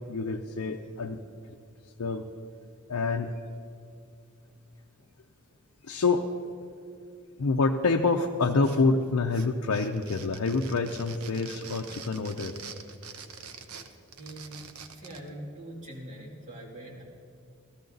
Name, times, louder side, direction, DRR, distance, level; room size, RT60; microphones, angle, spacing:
voice 1, 0.1-1.2 2.0-2.3 2.9-3.4 5.8-6.3 7.4-12.5, left 3 dB, 80° left, 2 dB, 0.6 m, -27 dB
sound 1, 8.4-9.0 9.3-15.3, right 5 dB, 80° right, 0.8 m, -45 dB
voice 2, 13.8-14.6 14.9-17.0, right 1 dB, 35° right, -5 dB, 2.7 m, -44 dB
14.5 x 13.5 x 3.9 m, 2.5 s
head